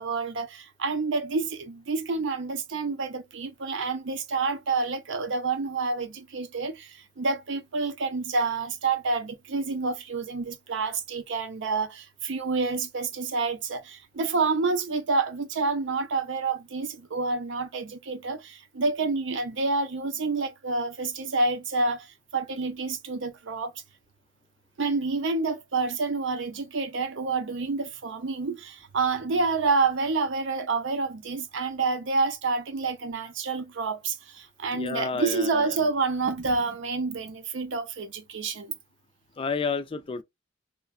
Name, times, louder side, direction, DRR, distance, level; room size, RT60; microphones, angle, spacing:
voice 1, 0.0-23.7 24.8-38.7, right 3 dB, 65° right, 0.5 m, -28 dB
voice 2, 34.7-35.7 39.4-40.2, left 5 dB, 25° left, 0.3 m, -30 dB
3.1 x 2.2 x 2.2 m
head